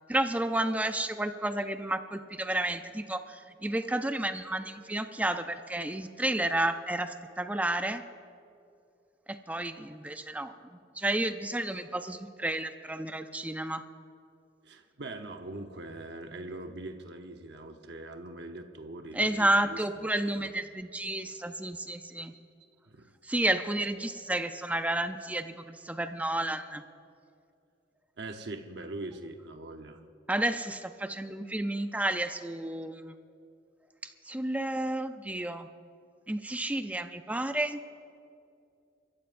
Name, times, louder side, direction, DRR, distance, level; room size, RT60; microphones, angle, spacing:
voice 1, 0.1-8.0 9.5-13.8 19.1-22.3 23.2-26.8 30.3-33.2 34.0-35.7 36.3-37.8, right 1 dB, 10° right, 8 dB, 0.5 m, -31 dB
voice 2, 14.6-20.1 20.4-20.5 22.9-23.1 28.2-30.0, right 2 dB, 65° right, 5 dB, 0.9 m, -42 dB
29.5 x 14.5 x 2.6 m, 2.6 s
head